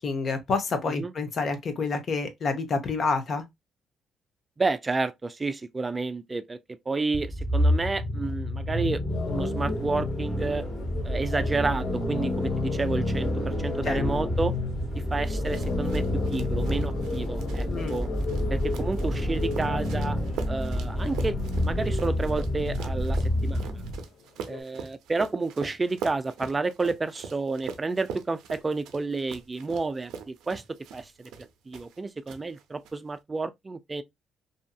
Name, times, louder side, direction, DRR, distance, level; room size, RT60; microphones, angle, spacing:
voice 1, 0.0-3.4 13.8-14.0 17.7-18.0, left 4 dB, 50° left, 0.8 m, -28 dB
voice 2, 4.6-6.6 6.9-9.0 9.3-10.7 11.0-14.5 14.9-18.1 18.5-20.2 20.5-23.7 24.5-30.6 30.9-31.3 31.7-34.0, right 3 dB, 25° right, 0.3 m, -30 dB
sound 1, 7.1-24.0, left 1 dB, 20° left, 1.2 m, -28 dB
sound 2, 9.1-24.6, left 5 dB, 85° left, 0.5 m, -40 dB
sound 3, 15.2-32.0 32.3-32.9, right 7 dB, 90° right, 0.4 m, -42 dB
2.7 x 2.6 x 2.2 m
cardioid pair, 90°, 0 cm